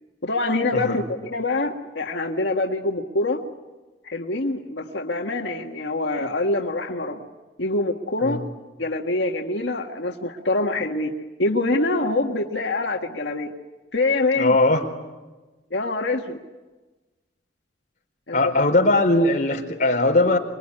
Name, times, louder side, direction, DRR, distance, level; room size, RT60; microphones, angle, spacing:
voice 1, 0.2-3.4 4.0-7.2 7.6-8.4 8.8-11.1 11.4-13.5 13.9-14.6 15.7-16.4 18.3-18.5, left 2 dB, 90° left, 2 dB, 1.7 m, -25 dB
voice 2, 14.4-14.9 18.3-20.4, left 2 dB, 45° left, 1 dB, 4.4 m, -19 dB
26.0 x 22.0 x 10.0 m, 1.2 s
head